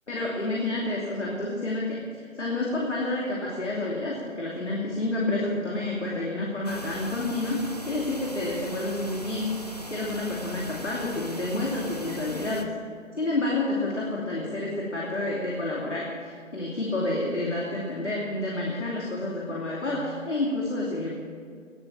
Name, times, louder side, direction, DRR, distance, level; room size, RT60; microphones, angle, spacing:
voice 1, 0.1-9.6 9.9-12.7 13.2-21.1, left 2 dB, 60° left, -3 dB, 2.8 m, -29 dB
sound 1, 6.6-12.6, right 1 dB, 30° left, 0.6 m, -39 dB
19.0 x 7.3 x 8.8 m, 2.1 s
figure-of-eight pair, 165°, 40 cm